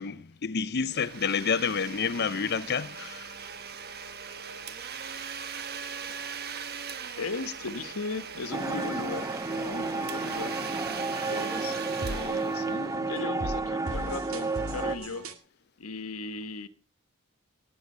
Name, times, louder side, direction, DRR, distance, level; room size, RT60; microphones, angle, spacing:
voice 1, 0.0-3.3, left 6 dB, 50° left, 0.6 m, -29 dB
Domestic sounds home sounds, 0.8-13.4, right 6 dB, 45° right, 1.2 m, -40 dB
voice 2, 7.1-10.6 11.2-15.3 15.8-16.7, left 3 dB, 90° left, 1.2 m, -37 dB
sound 1, 8.5-15.0, right 3 dB, 15° right, 0.6 m, -31 dB
sound 2, 10.4-15.4, right 1 dB, 75° right, 1.9 m, -40 dB
18.5 x 8.2 x 5.5 m
head